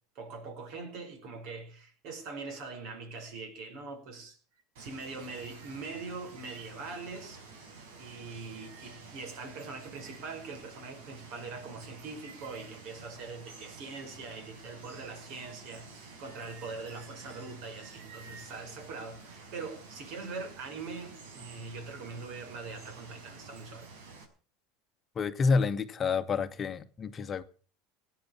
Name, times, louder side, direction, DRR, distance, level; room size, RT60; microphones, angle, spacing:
voice 1, 0.2-4.4 4.8-7.4 8.0-23.9, right 4 dB, 55° right, 5.6 m, -42 dB
Water, 4.7-24.2, right 4 dB, 85° right, 5.3 m, -50 dB
voice 2, 25.1-27.4, left 4 dB, 25° left, 1.2 m, -29 dB
18.0 x 9.5 x 7.2 m
supercardioid pair, 145°, 0 cm